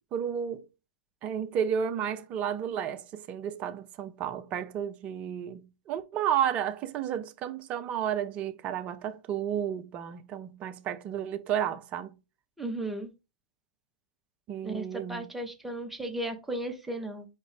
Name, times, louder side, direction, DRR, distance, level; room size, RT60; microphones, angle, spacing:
voice 1, 0.1-0.7 1.2-12.1 14.5-15.2, right 9 dB, 30° right, 0.5 m, -32 dB
voice 2, 12.6-13.1 14.6-17.3, right 1 dB, 5° right, 0.8 m, -35 dB
4.7 x 2.6 x 3.4 m
figure-of-eight pair, 105°, 5 cm